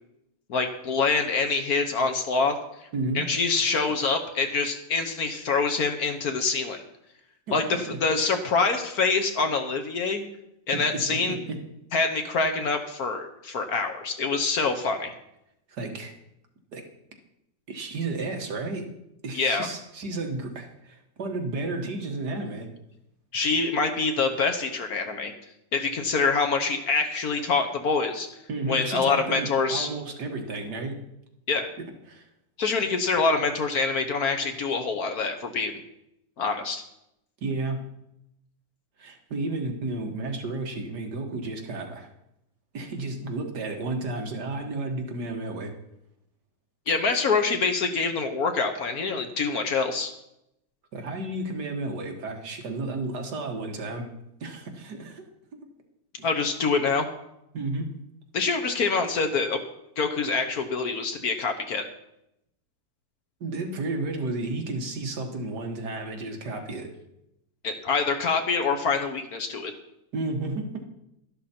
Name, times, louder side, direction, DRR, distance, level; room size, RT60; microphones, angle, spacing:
voice 1, 0.5-2.6 3.1-6.8 7.5-10.2 10.7-11.4 11.9-15.1 19.3-19.7 23.3-25.3 25.7-28.3 28.7-29.9 31.5-31.7 32.6-35.7 36.4-36.8 46.9-50.1 56.2-57.1 58.3-59.6 60.0-61.8 67.6-69.7, left 4 dB, 55° left, 6 dB, 1.3 m, -25 dB
voice 2, 2.9-3.3 7.5-7.6 10.7-11.6 15.7-16.1 16.7-16.8 17.7-18.9 19.2-22.7 28.5-31.0 32.1-32.3 37.4-37.8 39.0-42.1 42.7-45.7 50.9-54.1 54.4-55.3 56.2-56.3 57.5-57.9 63.4-66.9 70.1-70.8, right 2 dB, 60° right, 3 dB, 2.0 m, -32 dB
12.0 x 11.5 x 4.3 m, 0.83 s
omnidirectional pair, 2.0 m